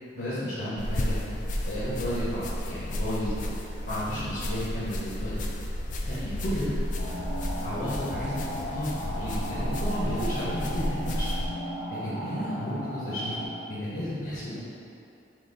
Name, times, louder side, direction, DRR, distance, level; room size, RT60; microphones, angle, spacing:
voice 1, 0.1-1.2 1.7-3.5 3.9-5.3 6.1-6.7 7.6-8.4 8.7-11.3 12.0-14.6, equal, 65° left, -11 dB, 0.9 m, -33 dB
sound 1, 0.8-11.5, left 1 dB, 45° left, 0.3 m, -32 dB
sound 2, 7.0-13.5, equal, 80° left, 1.2 m, -36 dB
3.8 x 3.0 x 4.0 m, 2.8 s
head